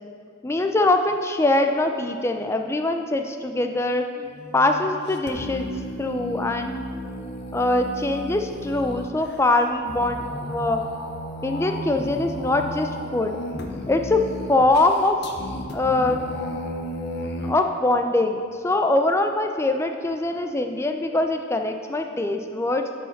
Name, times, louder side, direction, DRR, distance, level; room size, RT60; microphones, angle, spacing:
voice 1, 0.4-5.7 6.0-6.7 7.5-10.8 11.4-13.4 13.9-14.2 14.5-15.2 15.7-16.2 17.4-22.8, left 2 dB, 10° left, 5 dB, 0.3 m, -23 dB
sound 1, 4.3-17.5, left 1 dB, 50° left, 0.6 m, -34 dB
10.0 x 4.9 x 4.0 m, 2.3 s
head